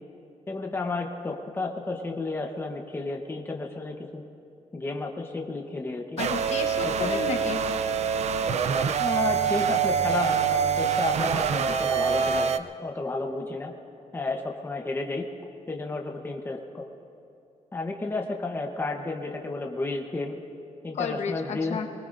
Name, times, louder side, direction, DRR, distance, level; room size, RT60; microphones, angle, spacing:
voice 1, 0.5-4.2 4.7-6.2 6.8-7.2 9.0-12.5 12.8-13.7 14.1-15.2 15.7-16.9 17.7-20.4 20.8-21.9, left 3 dB, 15° left, 1 dB, 1.0 m, -32 dB
voice 2, 6.2-7.6 20.9-21.9, left 6 dB, 60° left, 4 dB, 1.1 m, -32 dB
sound 1, 6.2-12.6, right 7 dB, 60° right, 0.5 m, -25 dB
25.5 x 20.0 x 2.6 m, 2.7 s
wide cardioid pair, 165°, 13 cm